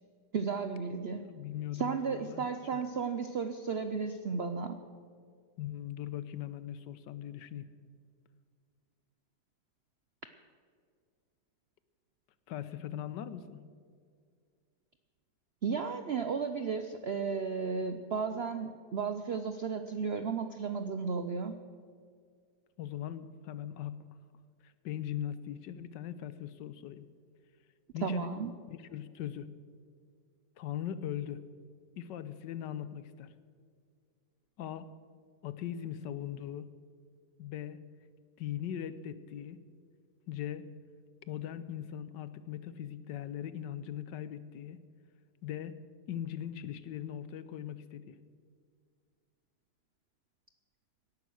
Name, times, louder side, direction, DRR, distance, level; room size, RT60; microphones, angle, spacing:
voice 1, 0.3-1.3 1.7-4.8 15.6-21.6 28.0-28.5, right 5 dB, 70° right, 8 dB, 0.6 m, -34 dB
voice 2, 1.2-2.5 5.6-7.7 12.5-13.6 22.8-24.0 24.6-27.1 27.9-28.4 28.7-29.5 30.6-31.4 32.0-33.3 34.6-34.9 35.4-36.7 37.4-37.8 38.4-39.6 40.3-40.7 41.3-44.8 45.4-45.8 46.1-48.2, left 10 dB, 80° left, 14 dB, 1.4 m, -40 dB
17.5 x 11.0 x 6.3 m, 2.1 s
omnidirectional pair, 1.9 m